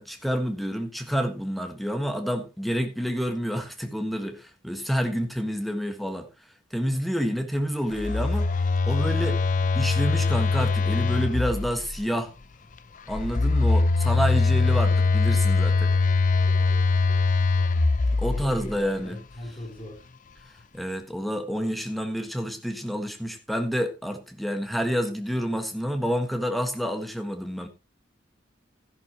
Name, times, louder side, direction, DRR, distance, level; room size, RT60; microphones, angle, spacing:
voice 1, 0.0-6.3 6.7-8.5 8.8-9.4 9.7-12.3 13.1-15.9 18.2-19.2 20.7-27.7, equal, ahead, 1.5 m, -28 dB
Telephone, 7.9-12.0 13.1-18.8, left 3 dB, 45° left, 0.6 m, -22 dB
voice 2, 16.4-16.9 18.2-20.1, left 1 dB, 30° left, 4.6 m, -40 dB
13.5 x 11.0 x 3.0 m
head